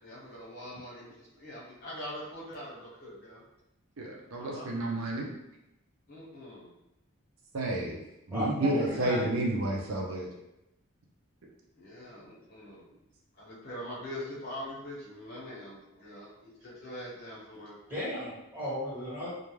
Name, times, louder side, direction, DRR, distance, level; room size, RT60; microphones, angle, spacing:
voice 1, 0.0-3.4 4.4-4.7 6.1-6.7 8.7-9.0 11.8-12.9 13.3-17.8, left 1 dB, 45° left, -7 dB, 0.9 m, -43 dB
voice 2, 4.0-5.3 7.5-8.0 8.3-10.3, right 1 dB, 75° right, -1 dB, 0.5 m, -30 dB
voice 3, 8.3-9.3 17.9-19.3, left 1 dB, 10° right, -11 dB, 1.4 m, -35 dB
2.4 x 2.2 x 3.1 m, 0.86 s
head